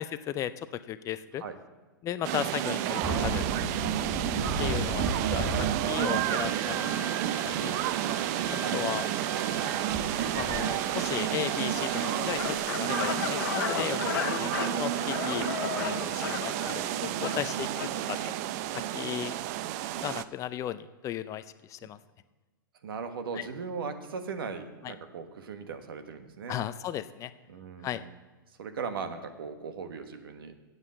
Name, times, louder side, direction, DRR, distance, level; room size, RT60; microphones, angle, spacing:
voice 1, 0.0-1.4 2.0-3.5 4.6-5.0 5.3-7.7 8.5-9.0 10.3-14.1 14.4-14.5 14.8-16.4 16.7-18.3 18.7-19.4 20.0-21.4 21.7-22.0 23.4-23.5 24.8-24.9 26.5-27.3 27.8-28.0, left 11 dB, 25° left, 13 dB, 0.4 m, -35 dB
sound 1, 2.2-20.2, right 12 dB, 45° right, 0.5 m, -31 dB
sound 2, 3.0-12.6, right 2 dB, 20° right, 4.1 m, -36 dB
voice 2, 8.5-8.8 9.3-9.7 14.0-14.5 15.7-15.9 17.1-17.7 21.8-21.9 22.8-26.7 27.5-28.1 28.5-30.5, right 5 dB, 75° right, 8 dB, 1.3 m, -39 dB
sound 3, 11.9-18.0, left 9 dB, 60° left, 1.1 m, -35 dB
8.2 x 7.6 x 7.6 m, 1.3 s
hypercardioid pair, 120°, 12 cm